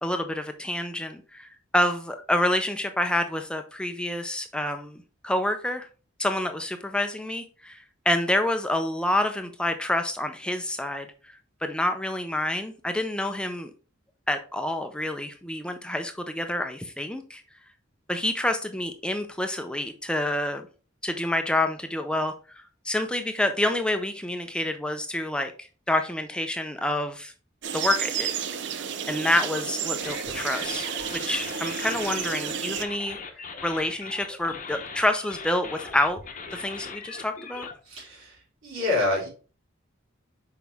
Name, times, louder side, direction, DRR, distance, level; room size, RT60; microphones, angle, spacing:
voice 1, 0.0-5.9 6.2-13.7 14.3-17.4 18.1-20.6 21.0-27.3 27.7-28.3 29.1-33.2 33.6-36.2 36.5-37.7, left 1 dB, 5° left, 0.4 m, -28 dB
sound 1, 27.6-32.9, right 7 dB, 60° right, 0.5 m, -31 dB
sound 2, 30.0-37.7, left 5 dB, 40° left, 0.8 m, -40 dB
voice 2, 37.9-38.4 38.6-39.3, left 2 dB, 85° right, 3.6 m, -27 dB
6.1 x 4.7 x 3.4 m
head